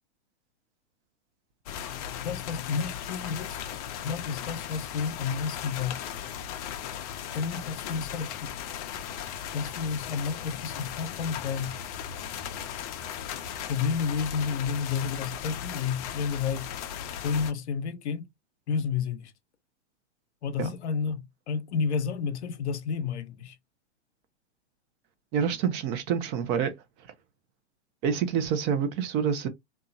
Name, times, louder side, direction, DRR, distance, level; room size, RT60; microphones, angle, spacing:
sound 1, 1.7-17.5, left 9 dB, 35° left, 0.4 m, -37 dB
voice 1, 2.2-3.7 4.0-6.1 7.3-8.5 9.5-11.8 13.7-16.8 17.2-18.3 18.7-19.3 20.4-23.6, left 6 dB, 70° left, 0.7 m, -31 dB
voice 2, 25.3-26.7 28.0-29.5, right 7 dB, 30° right, 0.5 m, -27 dB
2.8 x 2.3 x 2.5 m
hypercardioid pair, 110°, 36 cm